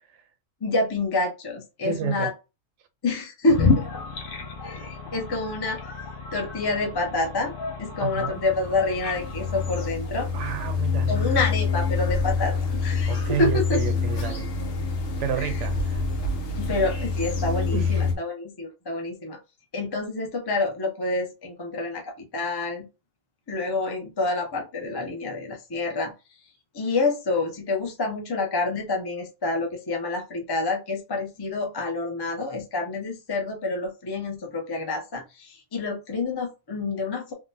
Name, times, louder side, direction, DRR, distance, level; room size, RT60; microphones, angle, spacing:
voice 1, 0.6-2.3 3.0-3.9 4.6-5.8 6.3-7.5 7.8-10.3 11.1-13.8 15.4-15.5 16.6-19.4 19.7-22.9 23.5-26.1 26.7-37.3, left 3 dB, 35° left, 0.4 m, -28 dB
voice 2, 1.8-2.3 3.6-3.8 8.0-8.4 10.3-11.3 13.1-14.5 15.2-16.0 17.7-18.2, right 8 dB, 70° right, 0.9 m, -30 dB
sound 1, 3.5-9.9, left 5 dB, 50° left, 0.8 m, -30 dB
sound 2, 8.4-18.1, left 4 dB, 80° left, 1.1 m, -27 dB
3.6 x 2.1 x 2.6 m
omnidirectional pair, 1.3 m